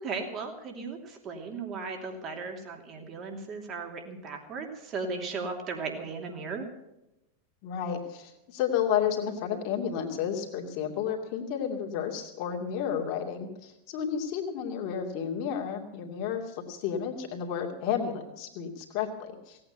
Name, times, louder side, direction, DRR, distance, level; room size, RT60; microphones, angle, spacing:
voice 1, 0.0-6.7, right 4 dB, 30° right, 3 dB, 2.8 m, -36 dB
voice 2, 7.6-19.6, left 8 dB, 45° left, 2 dB, 2.6 m, -32 dB
17.5 x 8.9 x 7.9 m, 0.91 s
figure-of-eight pair, 90°, 0 cm